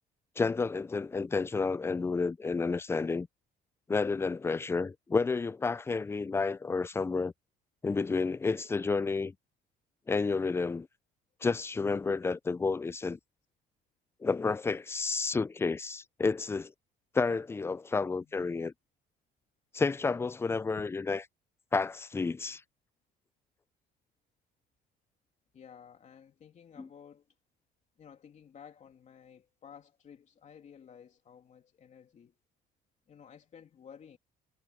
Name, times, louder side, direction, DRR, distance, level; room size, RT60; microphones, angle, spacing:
voice 1, 0.4-3.3 3.9-7.3 7.8-9.3 10.1-10.9 11.4-13.2 14.2-16.7 17.1-18.7 19.7-21.2 21.7-22.6 26.8-26.9, left 4 dB, 15° left, 0.4 m, -30 dB
voice 2, 18.1-18.5 20.8-20.9 25.5-27.2 28.0-32.3 33.1-34.2, left 7 dB, 45° left, 3.1 m, -54 dB
cardioid pair, 110°, 17 cm